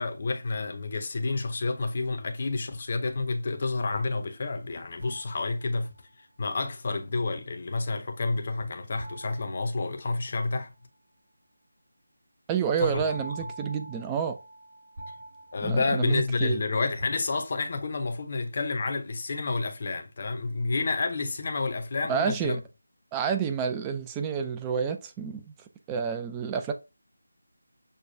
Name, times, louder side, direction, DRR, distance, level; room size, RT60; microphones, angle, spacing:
voice 1, 0.0-5.9 6.4-10.7 12.8-13.0 13.4-13.5 15.5-22.6, left 3 dB, 40° left, 0.6 m, -29 dB
sound 1, 5.0-6.2 9.0-10.6 13.0-16.6 17.0-17.9, right 1 dB, 50° right, 2.5 m, -46 dB
voice 2, 12.5-14.4 15.6-16.6 22.1-22.6 23.1-25.5 25.9-26.7, right 7 dB, 10° right, 0.3 m, -29 dB
6.4 x 2.2 x 2.6 m
figure-of-eight pair, 170°, 0 cm